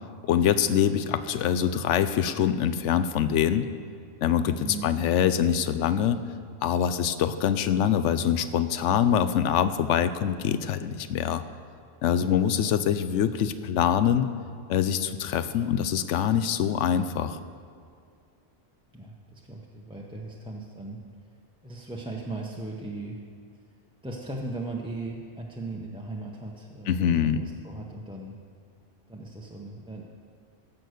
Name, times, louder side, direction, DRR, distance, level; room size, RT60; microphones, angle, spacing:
voice 1, 0.2-3.7 4.2-6.2 6.6-11.4 12.0-14.3 14.7-17.4 26.9-27.4, left 9 dB, 90° left, 12 dB, 0.9 m, -24 dB
voice 2, 18.9-21.0 21.6-23.2 24.0-28.3 29.1-30.0, right 2 dB, 5° right, -3 dB, 0.7 m, -38 dB
15.5 x 6.2 x 6.5 m, 2.3 s
omnidirectional pair, 1.2 m